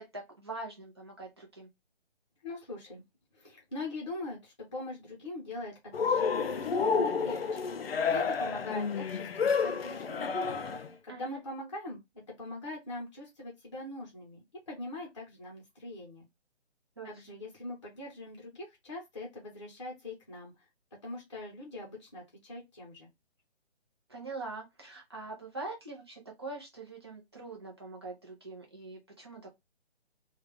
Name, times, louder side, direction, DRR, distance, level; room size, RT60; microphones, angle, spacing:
voice 1, 0.0-1.7 11.1-11.4 17.0-17.1 24.1-29.5, right 3 dB, 25° right, 0.7 m, -43 dB
voice 2, 2.4-3.0 3.3-7.7 8.1-10.4 11.0-12.0 12.4-16.2 17.0-20.5 21.0-23.1, left 2 dB, 25° left, 0.8 m, -42 dB
Cheering, 5.9-10.9, left 5 dB, 60° left, 0.5 m, -30 dB
3.3 x 2.4 x 3.3 m
hypercardioid pair, 180°, 34 cm